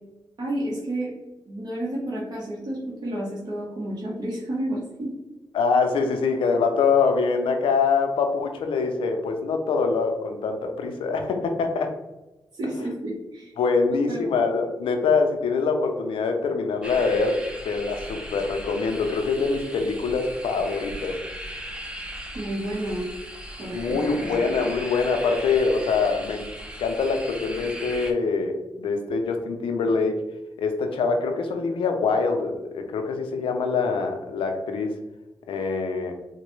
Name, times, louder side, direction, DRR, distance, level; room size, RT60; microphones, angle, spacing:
voice 1, 0.4-1.1 1.5-5.1 12.5-13.5 14.1-14.3 22.3-23.1 23.6-24.5, right 1 dB, 50° right, -6 dB, 1.0 m, -31 dB
voice 2, 5.5-11.9 13.6-21.2 23.7-26.5 26.8-30.2 30.6-34.9 35.5-36.1, left 4 dB, 80° left, 5 dB, 0.5 m, -24 dB
sound 1, 16.8-28.1, equal, 10° right, 0.6 m, -38 dB
3.9 x 2.2 x 3.1 m, 1.0 s
supercardioid pair, 50°, 9 cm